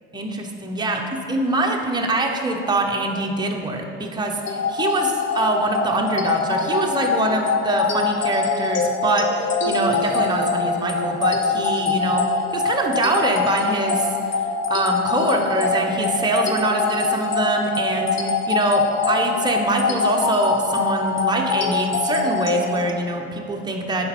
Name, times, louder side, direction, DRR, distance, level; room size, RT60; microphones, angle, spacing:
voice 1, 0.1-1.0 1.3-14.1 14.7-24.1, right 2 dB, 10° right, 1 dB, 1.0 m, -24 dB
sound 1, 4.5-22.9, left 4 dB, 30° left, 0.9 m, -24 dB
10.5 x 4.6 x 4.3 m, 2.6 s
hypercardioid pair, 65°, 37 cm